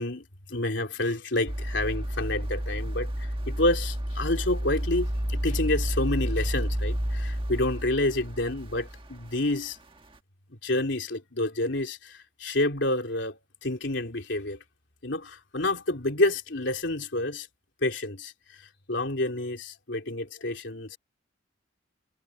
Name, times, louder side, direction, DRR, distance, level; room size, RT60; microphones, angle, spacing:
voice 1, 0.0-9.8 10.6-14.6 15.0-17.5 17.8-18.3 18.9-21.0, left 2 dB, 70° left, 3.1 m, -29 dB
sound 1, 1.5-9.7 10.1-10.2, equal, 25° right, 1.6 m, -30 dB
head